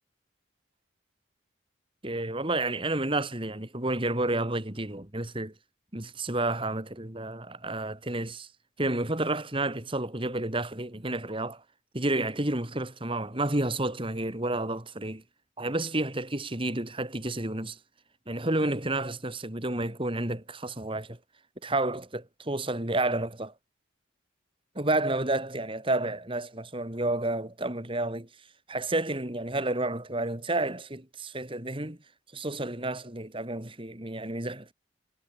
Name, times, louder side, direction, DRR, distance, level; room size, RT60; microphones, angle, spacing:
voice 1, 2.0-5.5 5.9-8.5 8.8-11.6 11.9-15.2 15.6-17.8 18.3-21.2 21.6-23.5 24.8-28.3 28.7-32.0 32.3-34.7, right 2 dB, 25° right, 2.2 m, -30 dB
head